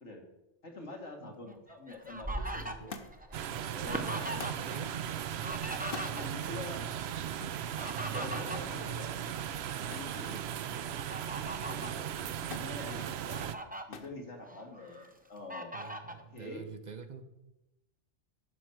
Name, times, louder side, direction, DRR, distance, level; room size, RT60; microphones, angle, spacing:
voice 1, 0.6-3.0 3.4-4.7 6.0-6.8 8.1-9.1 9.9-11.1 11.6-12.1 12.3-13.5 13.9-15.8 16.1-16.7, left 2 dB, 85° left, 0 dB, 2.3 m, -46 dB
Fowl, 1.5-4.8 5.1-6.6 7.5-9.6 10.1-10.3 10.9-12.0 12.6-12.7 13.1-13.8 14.4-15.1 15.5-16.2, right 1 dB, 10° right, 0.6 m, -41 dB
voice 2, 2.3-3.1 3.8-5.0 5.4-5.7 6.1-6.7 8.1-8.6 12.0-12.5 15.7-17.2, right 5 dB, 45° right, 9 dB, 0.9 m, -46 dB
Thump thud, 2.9-3.4 4.4-4.7 5.8-6.2 7.4-7.7 9.9-10.2 10.6-11.1 12.5-12.8 13.9-14.2 15.1-15.6 16.6-16.7, left 5 dB, 55° left, 1.1 m, -45 dB
sound 1, 3.3-13.6, right 9 dB, 70° right, 0.8 m, -37 dB
12.0 x 4.5 x 7.7 m, 0.93 s
omnidirectional pair, 1.2 m